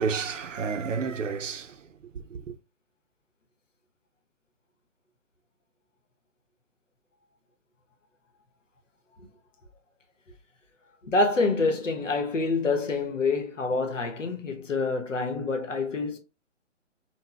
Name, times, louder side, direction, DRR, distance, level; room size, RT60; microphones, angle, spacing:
voice 1, 0.0-1.9 2.3-2.6, right 5 dB, 85° right, 0.6 m, -30 dB
voice 2, 11.0-16.2, left 3 dB, 80° left, 1.0 m, -27 dB
3.9 x 2.2 x 2.3 m
figure-of-eight pair, 140°, 37 cm